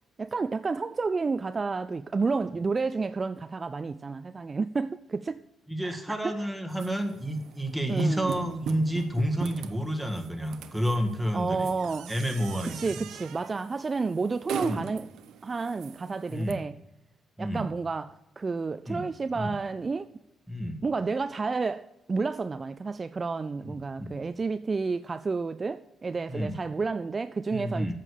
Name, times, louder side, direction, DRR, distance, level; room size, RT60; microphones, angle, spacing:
voice 1, 0.2-5.4 5.8-6.4 7.9-8.4 11.3-12.1 12.7-15.1 15.4-16.8 17.4-20.1 20.8-27.9, right 4 dB, 30° right, 0.3 m, -30 dB
voice 2, 5.7-11.7 12.1-13.0 14.6-14.8 16.3-16.6 17.4-17.7 18.9-19.0 19.3-19.5 20.5-20.8 23.6-24.2 26.3-26.6 27.5-27.9, equal, ahead, 1.6 m, -30 dB
sound 1, 6.7-16.5, right 9 dB, 80° right, 0.7 m, -41 dB
8.9 x 6.6 x 8.4 m
cardioid pair, 90°, 0 cm